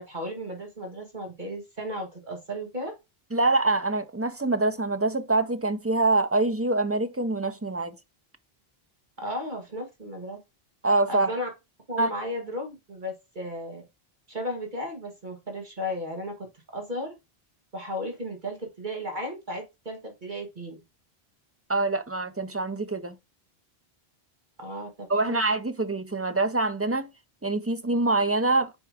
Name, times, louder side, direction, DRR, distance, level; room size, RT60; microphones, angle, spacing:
voice 1, 0.0-2.9 9.2-10.4 11.1-11.5 11.9-13.8 14.3-17.2 17.7-20.8 24.6-25.4, equal, 50° right, 1.6 m, -35 dB
voice 2, 3.3-7.9 10.8-11.3 12.0-12.1 21.7-23.1 25.1-27.1 27.4-28.8, right 2 dB, 25° right, 0.3 m, -25 dB
4.8 x 4.3 x 4.7 m
omnidirectional pair, 1.0 m